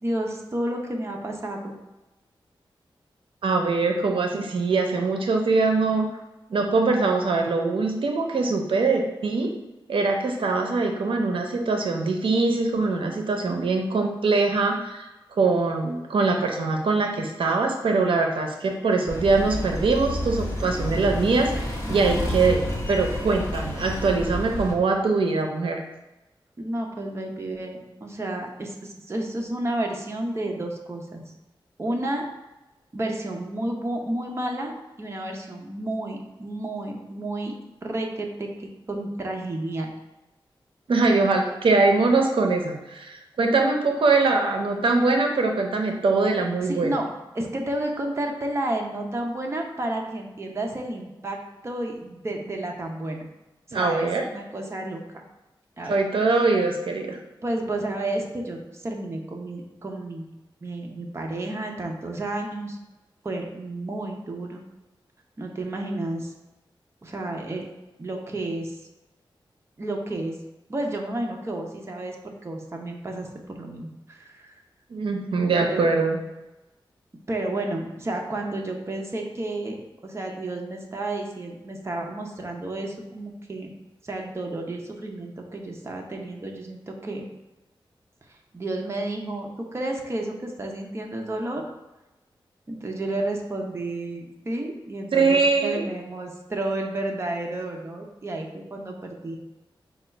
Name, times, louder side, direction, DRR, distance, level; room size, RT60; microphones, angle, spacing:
voice 1, 0.0-1.8 26.6-31.3 31.8-32.2 32.9-37.6 37.8-39.9 46.6-47.1 47.3-51.4 51.6-53.3 53.7-55.2 55.8-56.0 57.4-60.3 60.6-62.8 63.2-64.6 65.4-66.3 67.0-67.7 68.0-68.8 69.8-70.4 70.7-74.6 75.7-75.9 77.3-83.7 84.0-87.3 88.3-91.6 92.7-99.4, right 1 dB, 30° right, 1 dB, 0.7 m, -31 dB
voice 2, 3.4-6.1 6.5-9.5 9.9-15.1 15.4-25.8 40.9-47.0 53.7-54.2 55.9-57.2 74.9-76.2 95.1-95.9, right 3 dB, 80° right, 2 dB, 0.6 m, -22 dB
sound 1, 19.1-24.7, left 1 dB, 30° left, 1.0 m, -30 dB
4.9 x 2.3 x 4.3 m, 1.0 s
wide cardioid pair, 110°, 9 cm